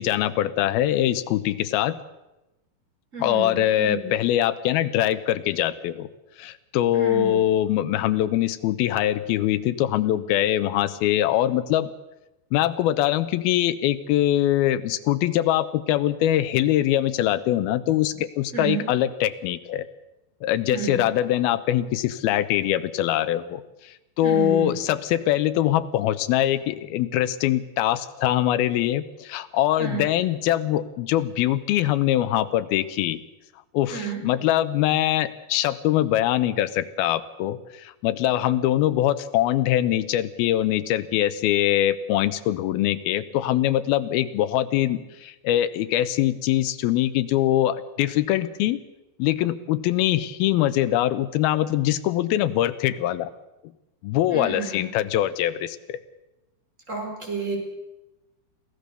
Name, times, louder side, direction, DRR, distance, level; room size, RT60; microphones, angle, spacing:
voice 1, 0.0-2.0 3.2-6.1 6.4-11.9 12.5-19.9 20.4-33.2 33.7-48.8 49.2-53.3 54.0-56.0, left 13 dB, 75° left, 12 dB, 2.6 m, -23 dB
voice 2, 3.1-4.1 6.9-7.4 18.5-18.9 20.7-21.0 24.2-24.9 29.8-30.0 33.9-34.2 54.3-54.9 56.9-57.6, right 4 dB, 20° right, 1 dB, 5.0 m, -31 dB
25.5 x 16.0 x 6.8 m, 0.98 s
omnidirectional pair, 4.7 m